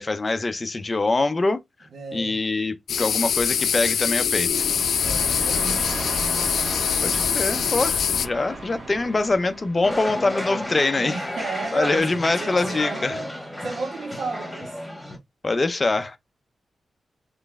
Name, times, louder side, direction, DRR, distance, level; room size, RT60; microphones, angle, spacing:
voice 1, 0.0-1.6 2.1-4.6 7.0-11.2 11.7-13.1 15.4-16.2, left 3 dB, 25° left, 0.5 m, -24 dB
voice 2, 1.9-2.4 5.0-5.9 7.4-7.8 10.9-13.3 13.6-14.8, right 4 dB, 70° right, 1.4 m, -34 dB
sound 1, 2.9-8.3, left 8 dB, 85° left, 0.3 m, -24 dB
sound 2, 4.5-10.2, right 2 dB, 35° right, 1.5 m, -34 dB
sound 3, 9.8-15.2, left 1 dB, 5° left, 1.5 m, -32 dB
4.1 x 3.2 x 3.4 m
wide cardioid pair, 165°, 0 cm